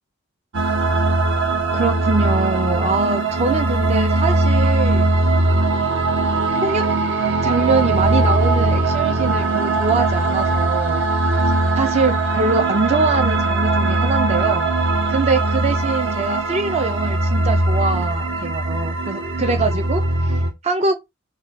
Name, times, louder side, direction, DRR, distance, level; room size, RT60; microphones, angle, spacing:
sound 1, 0.5-20.5, right 2 dB, 60° right, 0.8 m, -20 dB
voice 1, 1.7-5.1 6.6-6.8 7.4-11.0 11.7-14.7 15.1-20.3 20.6-21.0, right 3 dB, 30° right, 0.5 m, -23 dB
3.2 x 2.2 x 4.0 m
head